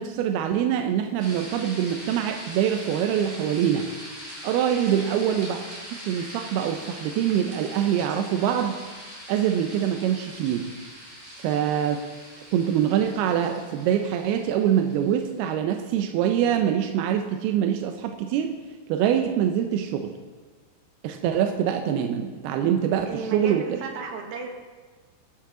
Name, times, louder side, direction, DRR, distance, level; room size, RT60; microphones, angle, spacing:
voice 1, 0.0-3.9 4.4-5.6 6.1-8.8 9.3-10.7 11.4-12.0 12.5-18.5 18.9-20.1 21.0-23.7, right 9 dB, 85° right, 5 dB, 2.3 m, -24 dB
sound 1, 1.2-15.3, equal, 15° right, 4.8 m, -42 dB
voice 2, 23.1-24.5, right 5 dB, 65° right, 1 dB, 2.9 m, -35 dB
21.5 x 8.3 x 3.8 m, 1.4 s
omnidirectional pair, 5.3 m